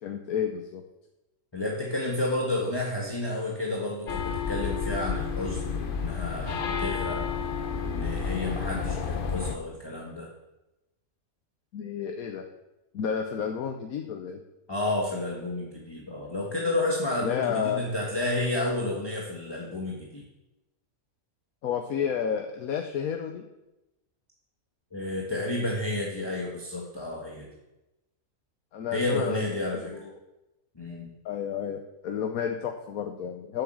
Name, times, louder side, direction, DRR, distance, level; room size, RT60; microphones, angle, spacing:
voice 1, 0.0-0.8 11.7-12.4 12.9-14.4 17.2-17.8 21.6-23.4 28.7-29.6 29.9-30.2 31.2-33.6, left 7 dB, 85° left, 4 dB, 1.2 m, -31 dB
voice 2, 1.5-7.2 7.8-10.3 14.7-20.2 24.9-27.5 28.9-29.9 30.8-31.1, left 2 dB, 20° left, -3 dB, 1.4 m, -31 dB
sound 1, 4.1-9.6, left 5 dB, 50° left, 0.7 m, -31 dB
7.9 x 7.2 x 7.5 m, 0.97 s
omnidirectional pair, 1.5 m